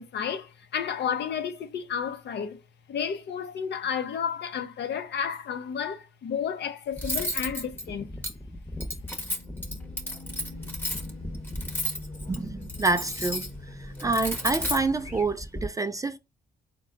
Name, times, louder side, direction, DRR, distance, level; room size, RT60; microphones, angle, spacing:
voice 1, 0.0-2.6 2.9-8.1, left 7 dB, 60° left, 0.6 m, -32 dB
Cutlery silverware, 7.0-15.7, equal, 10° left, 0.9 m, -34 dB
Race car auto racing / Alarm, 9.0-15.2, left 2 dB, 30° left, 1.0 m, -44 dB
voice 2, 12.3-13.5 14.0-16.2, right 3 dB, 15° right, 0.4 m, -27 dB
4.0 x 2.2 x 3.7 m
cardioid pair, 90°, 20 cm